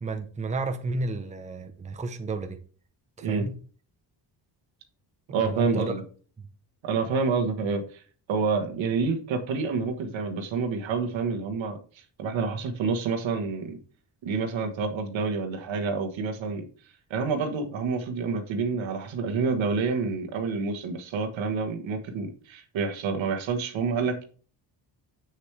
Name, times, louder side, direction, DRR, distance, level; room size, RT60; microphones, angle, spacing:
voice 1, 0.0-2.6 3.2-3.6 5.3-5.9, right 3 dB, 15° right, 0.7 m, -32 dB
voice 2, 5.3-6.0 6.8-8.0 8.3-11.8 12.2-13.8 14.2-16.6 17.1-24.2, right 4 dB, 85° right, 1.4 m, -28 dB
7.4 x 6.7 x 3.3 m
cardioid pair, 140°, 45 cm